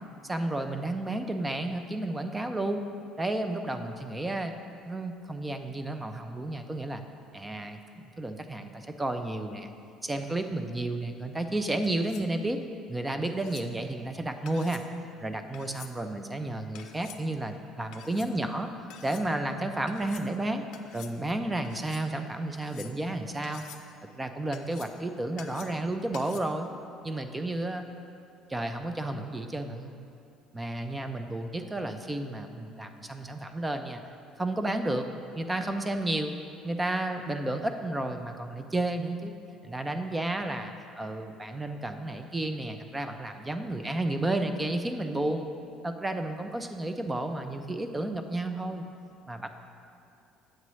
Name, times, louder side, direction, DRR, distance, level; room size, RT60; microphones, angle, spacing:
voice 1, 0.2-2.8 3.2-4.5 4.9-7.0 7.3-7.8 8.2-9.7 10.0-12.6 12.9-14.8 15.2-18.7 19.0-20.6 20.9-23.6 24.2-26.7 27.0-27.9 28.5-30.0 30.5-34.0 34.4-35.1 35.3-36.3 36.6-39.3 39.6-45.5 45.8-48.9 49.3-49.5, right 2 dB, 10° right, 7 dB, 0.4 m, -32 dB
sound 1, 11.8-12.3 13.2-13.7 14.5-14.9 15.5-15.9 16.7-17.2 17.9-18.3 18.9-19.3 19.9-20.3 20.7-21.2 21.6-22.1 22.5-23.1 23.4-23.9 24.5-25.0 25.4-25.8 26.1-26.4, left 9 dB, 65° left, 0.5 m, -49 dB
9.5 x 7.6 x 3.1 m, 2.6 s
cardioid pair, 145°, 0 cm